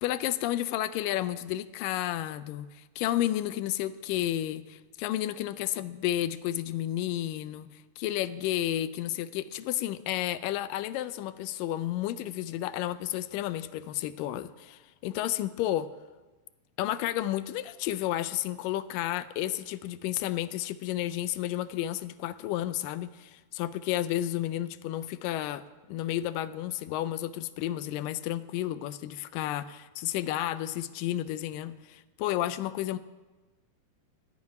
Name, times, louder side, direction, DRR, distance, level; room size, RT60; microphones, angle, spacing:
voice 1, 0.0-15.9 16.8-25.6 25.9-33.0, left 13 dB, 85° left, 13 dB, 2.2 m, -32 dB
13.5 x 7.0 x 9.4 m, 1.2 s
omnidirectional pair, 3.9 m